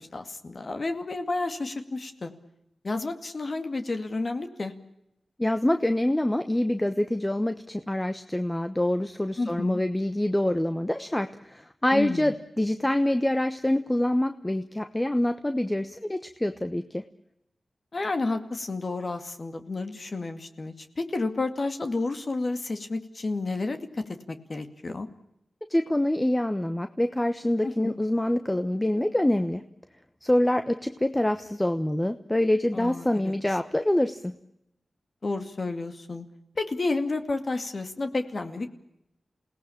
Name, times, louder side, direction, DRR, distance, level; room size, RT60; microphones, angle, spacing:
voice 1, 0.0-2.3 2.8-4.7 9.4-9.8 11.9-12.3 17.9-25.1 27.6-27.9 32.7-33.3 35.2-36.3 36.6-38.7, left 3 dB, 45° left, 7 dB, 2.3 m, -31 dB
voice 2, 5.4-17.0 25.7-29.6 30.2-34.3, left 1 dB, 15° left, 9 dB, 1.1 m, -26 dB
28.0 x 18.0 x 8.7 m, 0.84 s
wide cardioid pair, 80°, 0 cm